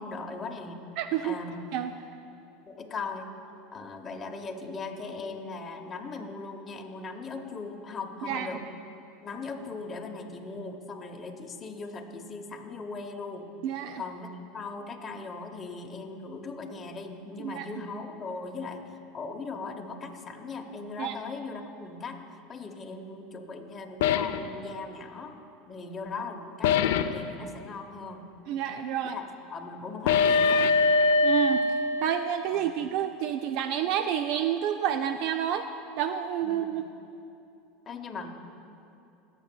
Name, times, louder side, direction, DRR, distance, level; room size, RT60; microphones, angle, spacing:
voice 1, 0.0-0.8 1.2-1.6 2.7-3.3 3.7-8.6 9.2-13.5 14.0-25.3 25.7-26.8 27.1-28.2 29.0-29.2 29.5-30.7 32.5-32.6 36.4-36.8 37.9-38.3, left 4 dB, 25° left, 3 dB, 0.8 m, -39 dB
voice 2, 1.0-1.4 1.7-1.9 8.2-8.5 13.6-14.0 17.4-17.7 21.0-21.1 28.5-29.2 31.2-31.6 32.0-35.7 36.0-36.8, right 10 dB, 60° right, 8 dB, 0.3 m, -29 dB
sound 1, 24.0-24.5 26.6-27.2 30.1-32.5, left 4 dB, 80° left, 0.4 m, -23 dB
21.0 x 7.3 x 2.2 m, 2.7 s
supercardioid pair, 120°, 0 cm